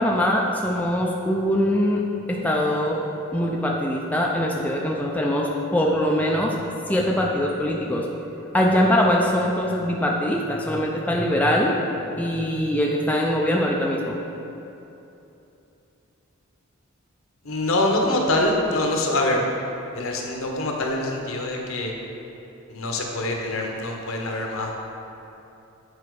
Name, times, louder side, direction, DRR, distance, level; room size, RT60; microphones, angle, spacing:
voice 1, 0.0-3.0 3.3-6.6 6.9-8.1 8.5-11.8 12.2-14.2, equal, 5° left, -2 dB, 0.4 m, -22 dB
voice 2, 17.4-19.5 19.9-21.9 22.7-24.7, left 1 dB, 70° left, 0 dB, 0.9 m, -24 dB
8.3 x 4.4 x 4.7 m, 2.9 s
head